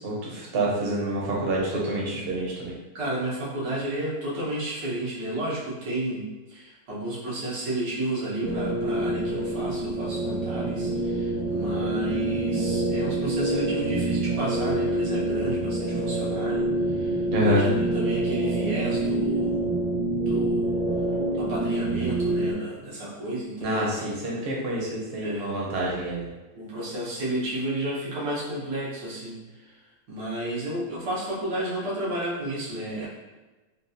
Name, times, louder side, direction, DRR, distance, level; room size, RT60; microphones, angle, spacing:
voice 1, 0.0-2.7 17.3-17.7 23.6-26.3, right 1 dB, 50° right, -4 dB, 0.8 m, -27 dB
voice 2, 2.9-19.7 20.2-20.8 21.3-23.9 25.2-25.5 26.5-33.1, right 1 dB, 90° right, -6 dB, 1.7 m, -32 dB
sound 1, 8.4-22.5, right 1 dB, 75° right, 1.0 m, -26 dB
3.8 x 2.3 x 2.6 m, 1.2 s
omnidirectional pair, 1.8 m